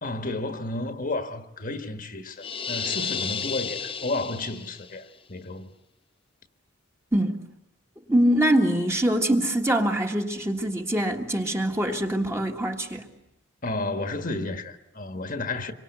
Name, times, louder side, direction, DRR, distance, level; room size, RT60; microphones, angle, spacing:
voice 1, 0.0-5.7 13.6-15.7, left 2 dB, 45° left, 1.5 m, -32 dB
sound 1, 2.4-4.9, left 6 dB, 25° left, 1.0 m, -32 dB
voice 2, 7.1-7.4 8.1-13.1, right 1 dB, 15° right, 1.6 m, -24 dB
27.0 x 24.5 x 8.1 m
head